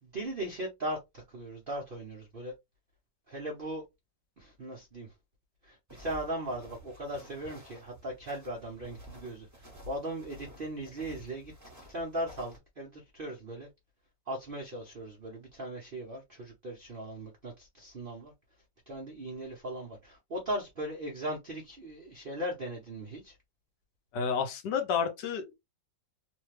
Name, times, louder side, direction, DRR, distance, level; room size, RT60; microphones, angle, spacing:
voice 1, 0.0-2.5 3.3-3.8 4.4-5.1 5.6-11.5 11.9-13.7 14.3-18.3 18.9-23.4, right 1 dB, 55° right, 0.6 m, -38 dB
sound 1, 5.9-12.6, left 1 dB, 15° right, 0.7 m, -51 dB
voice 2, 24.1-25.5, left 6 dB, 70° left, 1.2 m, -30 dB
3.2 x 2.2 x 3.1 m
omnidirectional pair, 2.0 m